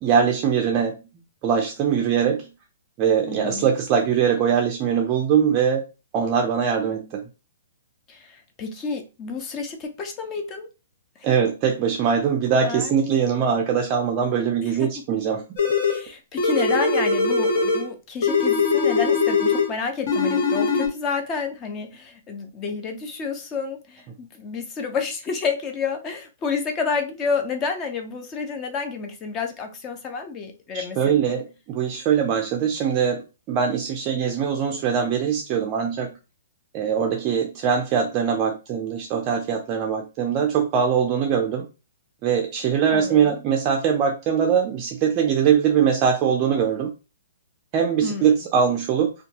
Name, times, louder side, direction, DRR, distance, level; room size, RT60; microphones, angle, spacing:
voice 1, 0.0-1.0 1.4-2.5 3.0-5.8 6.1-7.2 11.2-15.6 30.7-33.2 33.5-36.1 36.7-41.6 42.2-46.9 47.7-49.1, right 7 dB, 30° right, 0.4 m, -22 dB
voice 2, 3.2-3.7 8.1-10.7 11.2-11.3 12.6-13.4 14.6-14.9 15.9-31.2 42.9-43.4 48.0-48.3, left 5 dB, 20° left, 0.5 m, -30 dB
sound 1, 15.6-16.0 16.4-17.9 18.2-19.7 20.1-20.9, left 4 dB, 50° left, 0.8 m, -21 dB
2.6 x 2.2 x 2.8 m
hypercardioid pair, 155°, 0 cm